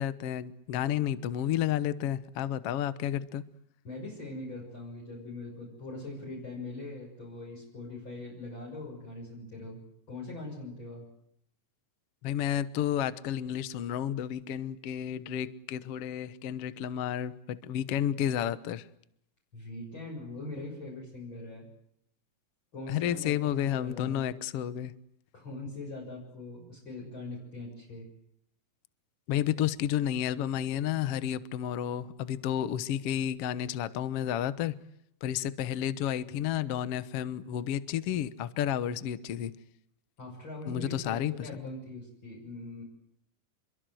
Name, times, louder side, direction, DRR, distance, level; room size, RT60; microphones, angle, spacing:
voice 1, 0.0-3.4 12.2-18.9 22.9-24.9 29.3-34.7 35.2-39.5 40.7-41.7, left 10 dB, 85° left, 1.3 m, -31 dB
voice 2, 3.8-9.8 10.1-11.1 19.5-21.7 22.7-24.3 25.3-28.1 40.2-42.8, left 2 dB, 30° left, 7.7 m, -42 dB
27.5 x 23.0 x 7.8 m
omnidirectional pair, 4.5 m